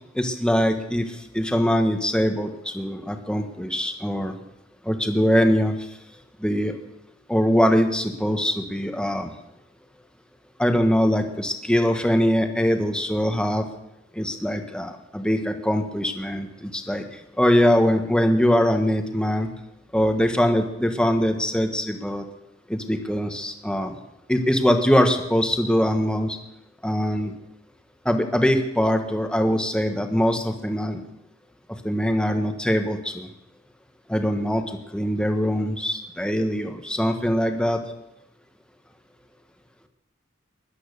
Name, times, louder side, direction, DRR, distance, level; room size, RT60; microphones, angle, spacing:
voice 1, 0.1-1.0 1.3-4.3 4.9-5.7 6.4-6.7 7.3-9.3 10.6-13.6 14.2-17.0 17.4-19.5 19.9-22.2 22.7-23.9 24.3-26.4 26.8-27.3 28.0-31.0 31.8-33.3 34.1-34.6 34.9-37.8, equal, 5° left, 5 dB, 1.4 m, -22 dB
18.0 x 11.5 x 6.7 m, 0.91 s
head